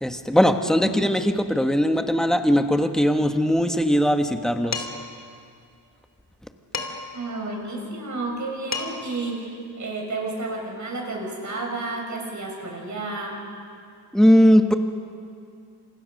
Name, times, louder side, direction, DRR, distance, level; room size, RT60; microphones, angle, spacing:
voice 1, 0.0-4.9 14.1-14.7, equal, ahead, 6 dB, 1.4 m, -19 dB
Dishes pots and pans, 4.7-5.2 6.7-7.2 8.4-8.5 8.7-9.2, left 4 dB, 40° left, 2.8 m, -31 dB
voice 2, 7.1-13.4, right 2 dB, 45° right, 0 dB, 7.0 m, -31 dB
29.0 x 28.0 x 6.6 m, 2.4 s
wide cardioid pair, 140°, 40 cm